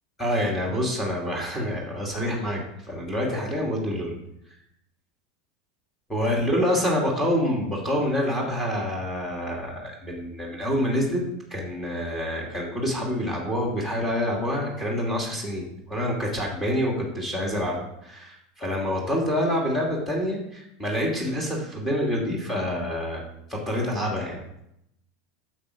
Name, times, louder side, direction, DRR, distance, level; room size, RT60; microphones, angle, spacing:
voice 1, 0.2-2.6 2.9-4.1 6.1-11.2 11.5-23.2 23.5-24.4, equal, 10° left, -3 dB, 2.6 m, -27 dB
8.6 x 6.6 x 5.0 m, 0.78 s
supercardioid pair, 110°, 0 cm